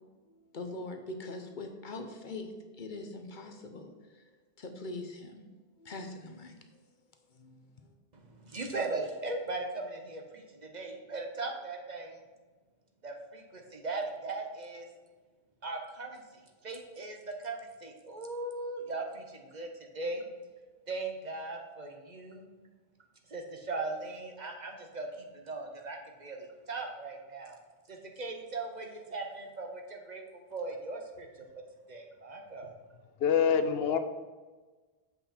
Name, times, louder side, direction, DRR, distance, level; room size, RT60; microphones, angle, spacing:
voice 1, 0.3-4.2 4.6-5.5 5.8-6.6 7.3-7.9, left 2 dB, 55° left, 5 dB, 0.9 m, -43 dB
voice 2, 8.1-12.2 13.0-14.9 15.6-16.2 16.6-19.7 19.9-20.2 20.9-22.5 23.3-27.6 27.9-30.2 30.5-31.3 31.9-32.7, right 3 dB, 45° right, 2 dB, 1.0 m, -38 dB
voice 3, 33.2-34.0, left 7 dB, 80° left, 9 dB, 0.8 m, -25 dB
7.8 x 5.4 x 4.3 m, 1.3 s
omnidirectional pair, 1.1 m